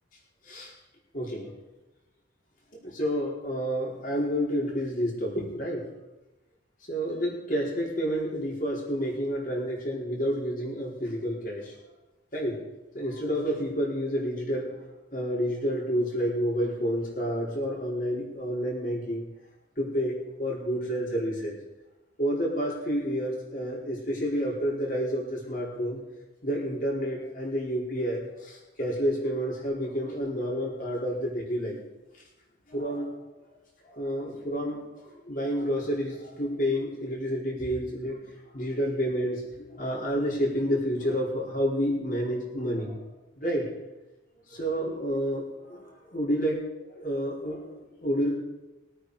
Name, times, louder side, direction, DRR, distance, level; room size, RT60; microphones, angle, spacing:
voice 1, 1.1-1.5 2.8-5.8 6.9-11.7 12.3-12.6 12.9-14.7 15.1-19.2 19.8-21.6 22.2-26.0 26.4-31.8 32.7-33.1 33.9-34.8 35.2-38.3 38.5-43.0 43.4-43.7 44.5-46.6 47.0-48.3, equal, 45° left, -3 dB, 4.4 m, -29 dB
21.0 x 8.9 x 4.9 m, 1.0 s
head